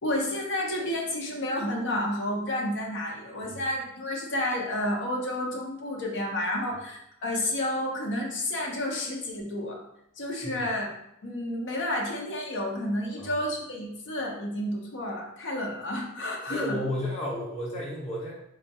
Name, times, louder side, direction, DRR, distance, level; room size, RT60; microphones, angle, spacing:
voice 1, 0.0-9.8 10.2-10.9 11.2-16.8, left 1 dB, 55° left, 0 dB, 0.6 m, -30 dB
voice 2, 16.5-18.3, left 1 dB, 30° left, -6 dB, 0.9 m, -32 dB
3.6 x 2.2 x 2.7 m, 0.78 s
head